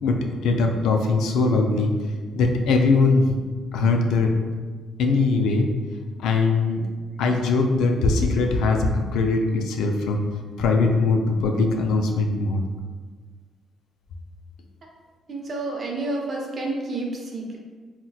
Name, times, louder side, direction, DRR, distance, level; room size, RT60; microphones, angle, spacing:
voice 1, 0.0-1.9 2.3-3.4 3.7-4.4 5.0-5.7 6.2-6.9 7.2-10.2 10.6-12.6, left 3 dB, 85° left, 3 dB, 0.3 m, -21 dB
voice 2, 15.3-17.6, right 2 dB, 45° right, 0 dB, 0.6 m, -29 dB
3.9 x 2.1 x 2.3 m, 1.4 s
cardioid pair, 90°, 0 cm